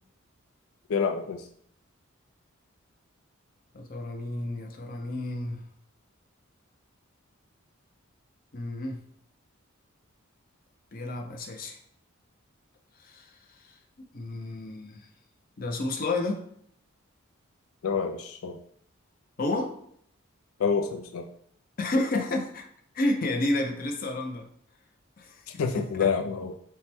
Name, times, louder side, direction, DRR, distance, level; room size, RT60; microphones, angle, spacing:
voice 1, 0.9-1.4 17.8-18.6 20.6-21.3 25.6-26.5, left 6 dB, 90° left, 5 dB, 0.4 m, -27 dB
voice 2, 3.7-5.6 8.5-9.0 10.9-11.8 13.0-13.3 13.6-13.7 14.1-15.1 15.6-16.4 19.4-19.7 21.8-22.7 22.9-24.5 25.2-26.1, left 2 dB, 45° left, 3 dB, 0.6 m, -30 dB
5.3 x 2.2 x 3.5 m, 0.66 s
head